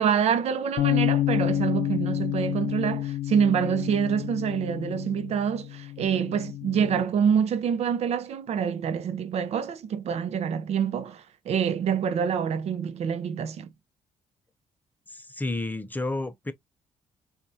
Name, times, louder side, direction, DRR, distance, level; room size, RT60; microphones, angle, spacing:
voice 1, 0.0-13.7, right 7 dB, 65° right, 0.7 m, -26 dB
sound 1, 0.8-7.0, left 13 dB, 75° left, 0.6 m, -29 dB
voice 2, 15.1-16.5, left 2 dB, 15° left, 0.6 m, -31 dB
4.3 x 2.4 x 2.7 m
cardioid pair, 105°, 12 cm